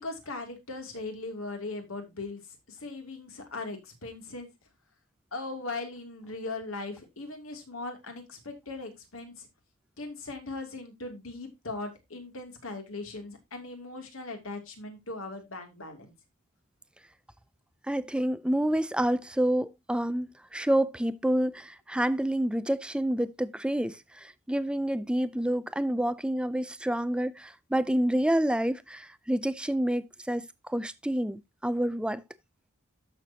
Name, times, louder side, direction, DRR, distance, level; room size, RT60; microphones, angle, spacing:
voice 1, 0.0-4.5 5.3-9.5 10.0-16.1, left 3 dB, 70° left, 2.7 m, -39 dB
voice 2, 17.9-32.2, right 1 dB, 5° right, 0.4 m, -28 dB
12.5 x 6.6 x 2.8 m
head